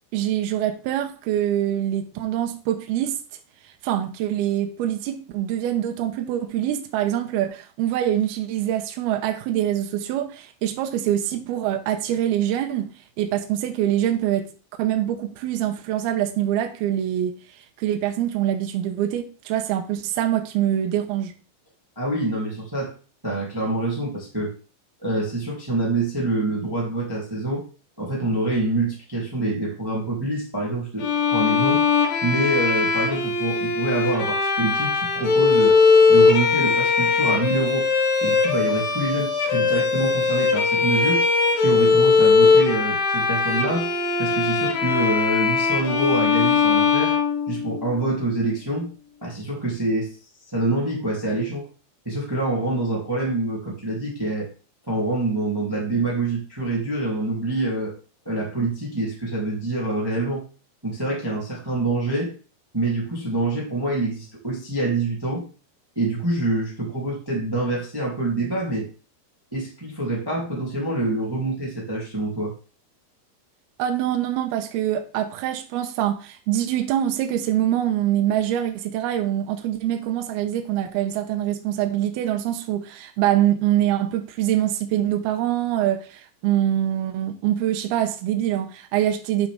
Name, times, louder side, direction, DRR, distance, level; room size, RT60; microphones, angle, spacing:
voice 1, 0.1-3.2 3.8-14.5 14.8-17.4 17.8-21.3 73.8-89.5, right 11 dB, 75° right, 2.4 m, -24 dB
voice 2, 21.9-22.9 23.2-24.5 25.0-27.6 28.0-31.8 32.2-35.8 36.1-37.9 38.2-41.2 41.6-43.9 44.2-47.1 47.5-48.9 49.2-50.1 50.5-51.7 52.0-54.5 54.9-57.9 58.2-60.4 60.8-62.3 62.7-65.4 65.9-68.9 69.5-72.5, right 2 dB, 10° right, 1.4 m, -26 dB
Bowed string instrument, 31.0-48.0, left 4 dB, 85° left, 4.0 m, -20 dB
8.5 x 6.2 x 3.4 m
omnidirectional pair, 5.2 m